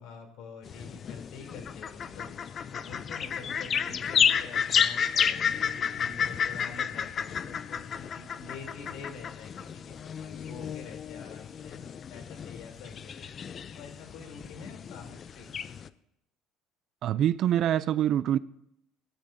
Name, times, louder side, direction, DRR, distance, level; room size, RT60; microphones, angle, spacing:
voice 1, 0.0-13.3 13.7-15.5, left 5 dB, 70° left, 3.3 m, -46 dB
sound 1, 0.7-15.9, left 7 dB, 40° left, 0.5 m, -31 dB
voice 2, 17.0-18.4, right 11 dB, 50° right, 0.4 m, -25 dB
18.5 x 12.0 x 2.7 m
cardioid pair, 115°, 0 cm